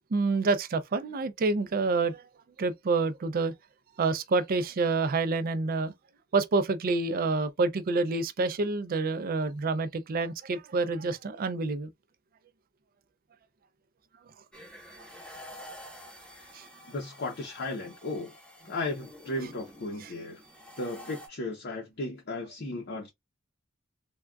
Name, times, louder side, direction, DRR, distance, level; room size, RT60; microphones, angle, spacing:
voice 1, 0.1-2.2 2.6-3.5 4.0-5.9 6.3-11.9 16.5-16.6 20.0-20.1, right 3 dB, 45° right, 0.4 m, -28 dB
sound 1, 14.5-21.3, equal, 5° left, 1.0 m, -49 dB
voice 2, 16.9-18.3 18.6-20.4 20.8-23.1, left 2 dB, 50° left, 0.6 m, -35 dB
3.5 x 2.2 x 2.2 m
head